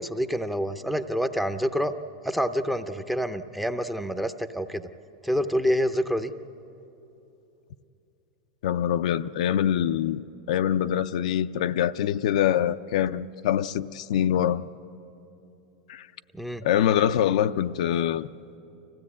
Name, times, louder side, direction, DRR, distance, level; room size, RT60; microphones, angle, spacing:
voice 1, 0.0-1.9 2.2-4.9 5.2-6.3 16.4-16.6, equal, ahead, 0.6 m, -27 dB
voice 2, 8.6-14.7 15.9-16.1 16.6-18.3, left 10 dB, 75° left, 0.5 m, -24 dB
25.0 x 16.0 x 8.5 m
supercardioid pair, 150°, 4 cm